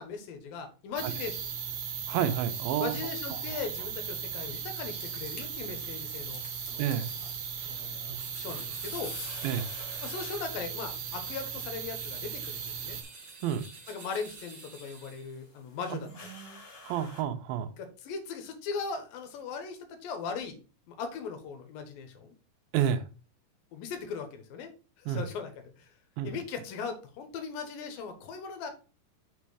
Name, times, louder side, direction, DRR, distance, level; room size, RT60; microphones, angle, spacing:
voice 1, 0.0-1.5 2.8-6.4 6.7-6.8 7.7-9.1 10.0-13.0 13.9-16.1 17.8-20.6 20.9-22.4 23.7-24.7 25.0-25.5 25.8-25.9 26.2-28.7, left 5 dB, 80° left, 2.9 m, -39 dB
sound 1, 1.0-13.0, right 7 dB, 60° right, 2.0 m, -37 dB
voice 2, 2.1-3.0 3.3-3.6 6.8-7.1 8.1-8.2 9.4-9.7 13.4-13.6 15.9-17.7 22.7-23.0 25.1-25.3 26.2-26.4, right 9 dB, 85° right, 2.6 m, -31 dB
sound 2, 4.2-17.2, left 3 dB, 60° left, 0.9 m, -51 dB
sound 3, 8.1-15.4, right 4 dB, 45° right, 1.5 m, -50 dB
6.1 x 4.3 x 4.8 m
omnidirectional pair, 4.1 m